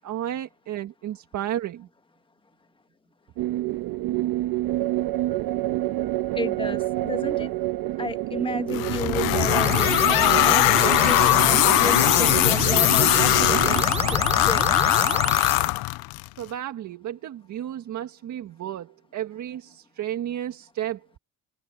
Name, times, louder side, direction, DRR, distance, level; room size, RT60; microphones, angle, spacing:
voice 1, 0.0-1.9 16.4-21.0, right 11 dB, 55° right, 1.7 m, -32 dB
sound 1, 3.4-13.8, right 16 dB, 80° right, 1.3 m, -28 dB
voice 2, 6.3-7.5 8.0-13.8 14.1-14.7, left 3 dB, 15° left, 1.5 m, -32 dB
sound 2, 8.7-16.3, left 22 dB, 85° left, 0.5 m, -20 dB
sound 3, 8.9-15.7, right 6 dB, 20° right, 0.4 m, -30 dB
cardioid pair, 140°, 35 cm